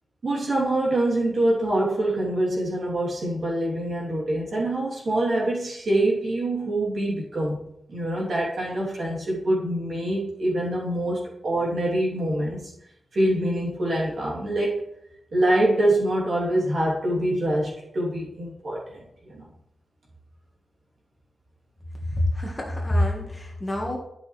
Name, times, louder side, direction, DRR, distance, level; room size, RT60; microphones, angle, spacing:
voice 1, 0.2-7.6 7.9-12.7 13.1-14.9 15.3-19.5, right 1 dB, 50° right, -4 dB, 3.1 m, -25 dB
voice 2, 22.0-24.0, left 1 dB, 15° left, 0 dB, 1.6 m, -26 dB
12.0 x 6.2 x 3.3 m, 0.77 s
wide cardioid pair, 160°, 0 cm